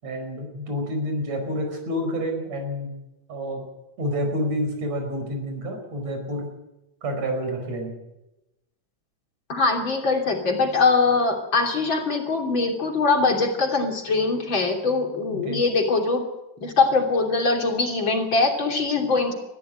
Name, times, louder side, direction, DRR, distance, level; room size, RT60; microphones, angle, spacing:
voice 1, 0.0-2.9 3.3-3.6 4.0-6.5 7.0-7.9 15.3-15.6, equal, 65° right, 4 dB, 6.3 m, -28 dB
voice 2, 9.5-16.2 16.6-19.3, left 3 dB, 40° left, 2 dB, 3.6 m, -22 dB
20.5 x 14.5 x 9.2 m, 0.96 s
omnidirectional pair, 3.3 m